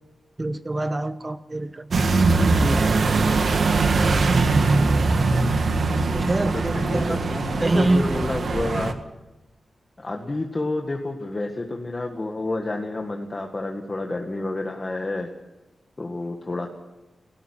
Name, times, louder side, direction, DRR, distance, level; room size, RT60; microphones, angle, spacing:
voice 1, 0.4-2.0 2.6-3.0 6.1-7.2 7.6-8.1, right 2 dB, 25° right, 11 dB, 1.2 m, -25 dB
sound 1, 1.9-8.9, right 3 dB, 65° right, 1.6 m, -21 dB
voice 2, 4.9-5.5 6.4-9.0 10.0-15.3 16.0-16.7, left 2 dB, 30° left, 2 dB, 1.8 m, -30 dB
17.5 x 17.0 x 9.9 m, 1.0 s
wide cardioid pair, 120°, 0 cm